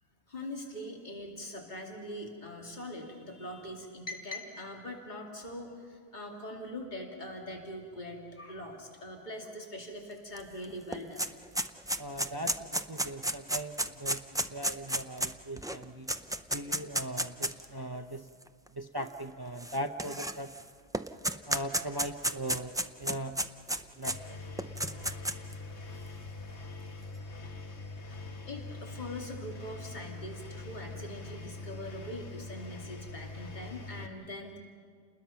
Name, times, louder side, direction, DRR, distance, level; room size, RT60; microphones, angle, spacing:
voice 1, 0.3-11.3 28.5-34.6, left 1 dB, 45° left, 0 dB, 2.7 m, -42 dB
sound 1, 10.4-10.5 10.7-17.6 18.4-18.5 19.6-20.6 20.9-24.2 24.6-25.5, right 1 dB, 5° right, 0.3 m, -32 dB
voice 2, 12.0-16.1 16.5-18.3 18.7-20.5 21.5-23.4 24.0-24.2 24.9-25.3, right 1 dB, 25° right, 6 dB, 0.7 m, -39 dB
Engine, 24.1-34.1, left 2 dB, 85° left, 1.6 m, -43 dB
29.5 x 20.5 x 5.8 m, 2.1 s
omnidirectional pair, 1.1 m